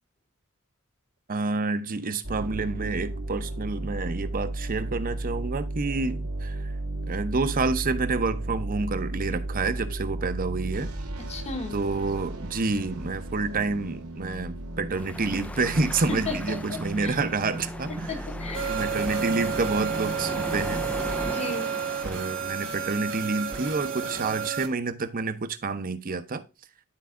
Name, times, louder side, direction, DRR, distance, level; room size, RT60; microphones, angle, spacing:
voice 1, 1.3-6.7 7.1-10.9 11.7-18.1 18.7-20.8 22.0-26.4, right 3 dB, 40° right, 0.7 m, -28 dB
sound 1, 2.2-21.3, right 1 dB, 85° right, 1.5 m, -35 dB
voice 2, 11.3-11.8 16.3-17.2 18.1-18.7 21.3-21.8, left 3 dB, 30° left, 1.0 m, -35 dB
sound 2, 14.9-24.5, left 1 dB, 5° left, 0.3 m, -39 dB
sound 3, 18.5-24.7, right 7 dB, 60° right, 1.5 m, -31 dB
11.5 x 4.7 x 2.5 m
head